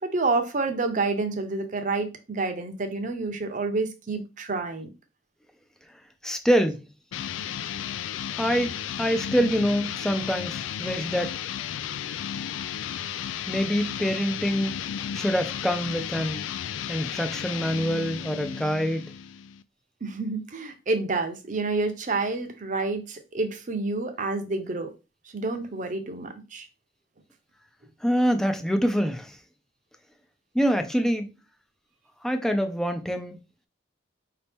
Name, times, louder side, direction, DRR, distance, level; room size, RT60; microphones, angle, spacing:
voice 1, 0.0-4.9 20.0-24.9 25.3-26.7, right 3 dB, 40° right, 0.8 m, -28 dB
voice 2, 6.2-6.8 8.4-11.4 13.5-14.7 15.1-16.5 16.9-19.1 28.0-29.4 30.5-31.3 32.2-33.4, equal, 5° left, 0.5 m, -25 dB
sound 1, 7.1-19.6, left 9 dB, 85° left, 0.3 m, -34 dB
5.1 x 2.9 x 3.5 m
head